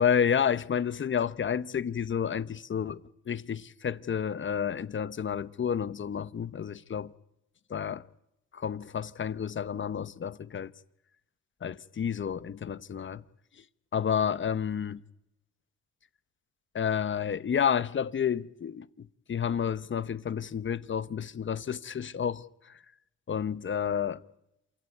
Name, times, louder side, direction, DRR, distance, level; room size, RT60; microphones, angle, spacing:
voice 1, 0.0-7.1 7.7-8.1 8.5-10.7 11.6-13.2 13.6-13.7 13.9-15.0 16.7-22.8 23.3-24.2, left 8 dB, 40° left, 1.0 m, -30 dB
27.0 x 15.5 x 9.5 m
cardioid pair, 90°, 30 cm